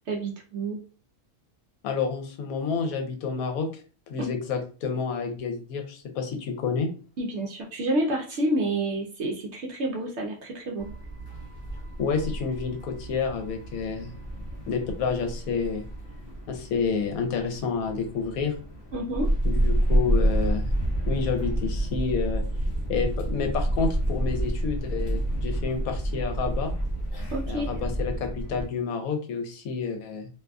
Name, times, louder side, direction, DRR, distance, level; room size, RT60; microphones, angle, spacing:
voice 1, 0.1-0.8 4.2-4.3 7.2-10.9 18.9-19.3 27.3-27.7, right 1 dB, 65° right, 0 dB, 0.7 m, -29 dB
voice 2, 1.8-3.7 4.1-6.9 12.0-14.1 14.7-15.8 16.5-18.5 19.4-20.6 21.1-22.4 22.9-26.7 27.5-30.3, left 5 dB, 75° left, 5 dB, 1.0 m, -29 dB
sound 1, 10.8-28.7, right 1 dB, 50° left, 0.6 m, -29 dB
2.6 x 2.4 x 2.3 m, 0.37 s
omnidirectional pair, 1.5 m